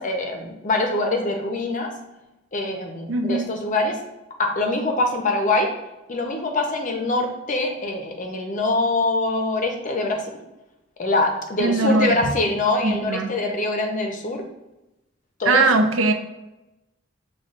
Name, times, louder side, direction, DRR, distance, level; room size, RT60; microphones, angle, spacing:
voice 1, 0.0-1.9 2.5-4.0 4.4-5.7 6.1-10.2 11.0-14.5 15.4-15.6 16.1-16.2, left 2 dB, 40° left, 3 dB, 0.6 m, -24 dB
voice 2, 3.1-3.5 11.6-12.3 12.8-13.3 15.5-16.1, right 3 dB, 85° right, 7 dB, 0.5 m, -20 dB
6.4 x 2.3 x 2.4 m, 0.97 s
head